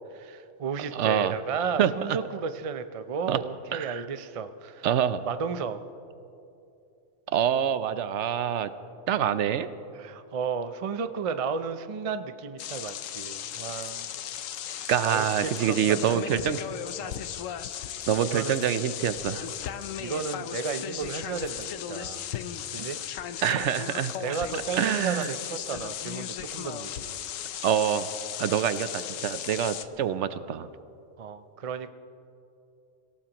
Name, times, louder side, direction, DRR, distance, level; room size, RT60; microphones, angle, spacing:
voice 1, 0.1-4.9 5.2-5.8 9.9-14.1 14.7-16.5 17.0-17.2 18.2-18.6 20.0-22.3 22.7-23.0 24.2-27.2 31.2-31.9, right 5 dB, 45° right, 11 dB, 0.4 m, -33 dB
voice 2, 0.9-1.3 1.8-1.9 3.3-3.4 3.7-4.0 4.8-5.2 7.3-8.7 9.1-9.7 14.9-16.6 18.1-19.5 23.4-24.4 24.8-25.3 27.6-28.1 28.4-30.7, right 9 dB, 70° right, 13 dB, 0.9 m, -26 dB
sound 1, 12.6-29.8, left 10 dB, 90° left, 1.0 m, -36 dB
26.0 x 17.0 x 3.0 m, 2.7 s
omnidirectional pair, 1.3 m